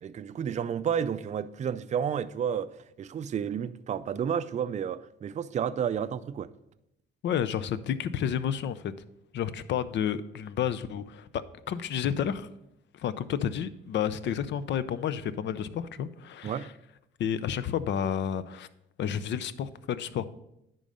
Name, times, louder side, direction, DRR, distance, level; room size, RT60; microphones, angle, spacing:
voice 1, 0.0-2.7 3.0-6.5 16.4-16.7, right 8 dB, 35° right, 0.4 m, -31 dB
voice 2, 7.2-8.8 9.3-12.5 12.9-16.7 17.2-18.7 19.0-20.3, left 9 dB, 65° left, 0.5 m, -31 dB
10.0 x 3.8 x 5.4 m
cardioid pair, 90°, 20 cm